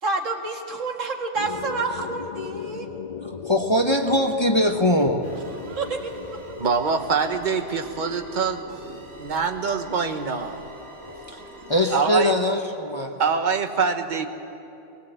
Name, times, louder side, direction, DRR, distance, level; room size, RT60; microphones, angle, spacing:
voice 1, 0.0-2.9 5.6-6.6, right 3 dB, 85° right, 3 dB, 2.1 m, -29 dB
sound 1, 1.3-6.8, left 6 dB, 40° left, 0.6 m, -38 dB
voice 2, 3.2-5.2 11.7-13.1, left 1 dB, 25° left, 3 dB, 1.0 m, -21 dB
sound 2, 5.2-12.0, equal, 65° right, 2.7 m, -43 dB
voice 3, 6.6-10.6 11.9-12.3 13.2-14.3, right 5 dB, 40° right, 6 dB, 1.2 m, -25 dB
21.5 x 18.0 x 8.0 m, 2.9 s
omnidirectional pair, 1.3 m